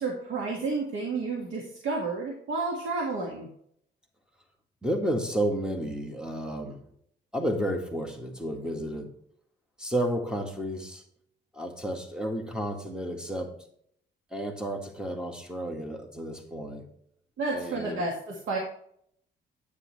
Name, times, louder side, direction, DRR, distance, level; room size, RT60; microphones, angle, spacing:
voice 1, 0.0-3.5 17.4-18.6, right 3 dB, 80° right, 0 dB, 1.8 m, -31 dB
voice 2, 4.8-6.8 7.3-9.1 9.8-11.0 11.5-13.5 14.3-16.9 17.5-18.0, right 1 dB, 5° right, 4 dB, 1.9 m, -31 dB
9.5 x 8.7 x 3.2 m, 0.67 s
cardioid pair, 90°, 20 cm